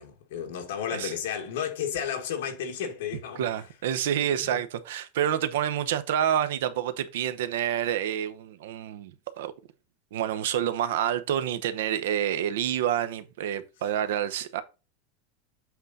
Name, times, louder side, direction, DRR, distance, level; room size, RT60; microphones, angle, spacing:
voice 1, 0.0-3.4 4.4-4.6, left 8 dB, 65° left, 2.0 m, -33 dB
voice 2, 3.3-9.5 10.1-14.6, right 10 dB, 70° right, 0.9 m, -28 dB
8.1 x 3.9 x 4.0 m
supercardioid pair, 180°, 0 cm